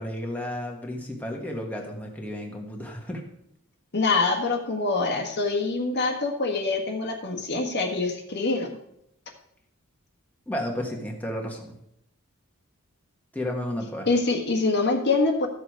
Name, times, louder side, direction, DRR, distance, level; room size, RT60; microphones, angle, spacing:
voice 1, 0.0-3.2 10.5-11.7 13.3-14.1, left 1 dB, 5° left, 0 dB, 1.4 m, -32 dB
voice 2, 3.9-8.7 14.1-15.5, left 3 dB, 50° left, 2 dB, 1.5 m, -25 dB
13.5 x 6.8 x 4.7 m, 0.76 s
head